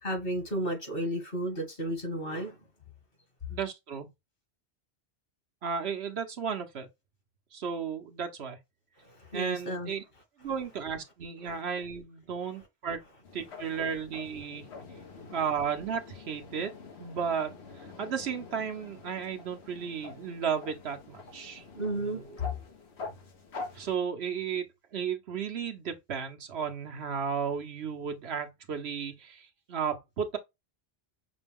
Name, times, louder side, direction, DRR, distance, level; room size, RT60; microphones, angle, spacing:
voice 1, 0.0-2.6 9.0-9.9 21.7-22.6, equal, 60° left, 2.1 m, -33 dB
voice 2, 3.5-4.1 5.6-6.9 7.5-8.6 9.3-10.0 10.4-13.0 13.3-14.6 15.3-16.7 17.0-17.5 18.0-21.6 23.7-24.7 24.9-30.4, right 7 dB, 75° right, 1.2 m, -34 dB
sound 1, 13.2-24.0, left 4 dB, 80° left, 1.3 m, -46 dB
6.1 x 2.3 x 3.5 m
omnidirectional pair, 1.1 m